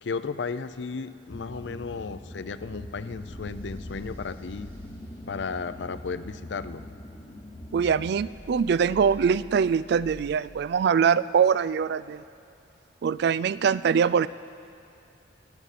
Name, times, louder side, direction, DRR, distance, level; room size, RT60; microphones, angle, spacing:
voice 1, 0.0-4.7 5.3-6.8, left 5 dB, 70° left, 13 dB, 0.5 m, -34 dB
sound 1, 1.3-8.3, left 1 dB, 25° left, 0.8 m, -42 dB
sound 2, 3.2-4.8 8.3-10.4, left 1 dB, 10° right, 1.5 m, -46 dB
voice 2, 7.7-12.2 13.0-14.3, right 6 dB, 60° right, 17 dB, 0.3 m, -23 dB
26.0 x 9.5 x 4.2 m, 2.6 s
head